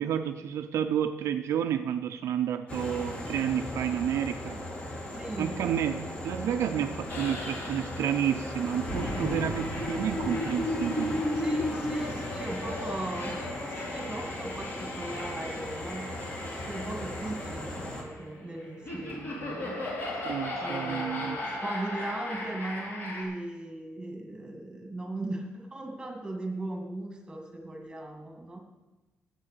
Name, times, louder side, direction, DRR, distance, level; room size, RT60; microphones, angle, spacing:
voice 1, 0.0-4.6 5.4-11.2 20.2-21.4, right 9 dB, 70° right, 7 dB, 0.5 m, -30 dB
sound 1, 2.7-18.0, left 1 dB, 25° left, 1.8 m, -38 dB
voice 2, 5.1-5.6 11.3-19.8 20.6-28.6, right 2 dB, 15° right, 2 dB, 1.9 m, -38 dB
sound 2, 7.1-23.2, left 1 dB, 45° left, 3.7 m, -35 dB
10.0 x 8.0 x 6.7 m, 1.1 s
wide cardioid pair, 165°, 5 cm